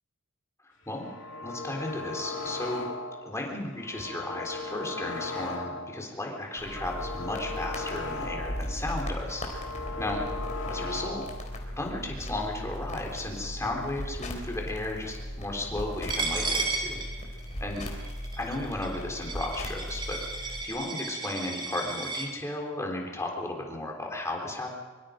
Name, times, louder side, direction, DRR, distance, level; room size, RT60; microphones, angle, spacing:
voice 1, 0.6-1.1 1.4-2.9 3.3-9.4 10.0-10.2 10.7-11.3 11.8-17.0 17.6-17.9 18.4-24.7, left 2 dB, 15° left, 0 dB, 3.7 m, -34 dB
sound 1, 0.9-3.3 3.6-6.0 6.4-8.7 9.0-11.4, left 3 dB, 60° left, 2.5 m, -37 dB
sound 2, 6.6-20.6, equal, 35° left, 3.7 m, -38 dB
Coin (dropping), 16.1-22.3, right 3 dB, 20° right, 4.3 m, -34 dB
24.0 x 24.0 x 5.1 m, 1.4 s
head